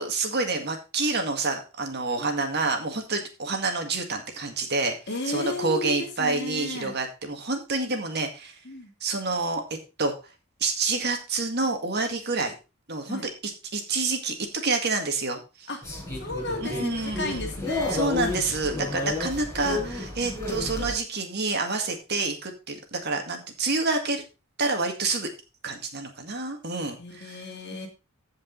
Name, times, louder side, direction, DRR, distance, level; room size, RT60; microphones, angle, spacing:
voice 1, 0.0-5.0 5.3-8.6 9.0-9.6 10.0-10.1 10.6-12.5 12.9-15.7 16.6-17.5 17.9-24.2 24.6-25.3 25.6-27.4, right 3 dB, 45° right, 5 dB, 2.0 m, -28 dB
voice 2, 5.1-7.0 8.6-8.9 13.1-13.2 15.7-15.8 16.2-18.0 26.9-27.9, left 2 dB, 50° left, 2 dB, 2.7 m, -33 dB
sound 1, 15.8-20.9, left 2 dB, 15° left, 5.2 m, -31 dB
15.5 x 5.3 x 3.9 m, 0.30 s
head